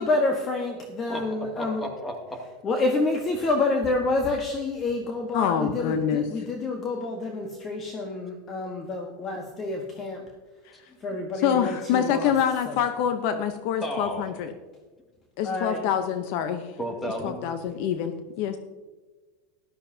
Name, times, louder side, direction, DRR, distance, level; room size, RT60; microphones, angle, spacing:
voice 1, 0.0-1.8 2.6-10.3 11.0-12.3 12.6-12.8 15.4-15.8, left 2 dB, 30° left, 3 dB, 1.3 m, -28 dB
voice 2, 1.1-2.4 10.9-11.2 13.8-14.3 16.8-17.4, equal, 15° left, 2 dB, 2.4 m, -34 dB
voice 3, 5.3-6.3 11.4-14.5 15.4-16.7 17.2-18.6, left 8 dB, 60° left, 8 dB, 0.8 m, -26 dB
13.5 x 12.0 x 2.8 m, 1.3 s
supercardioid pair, 125°, 0 cm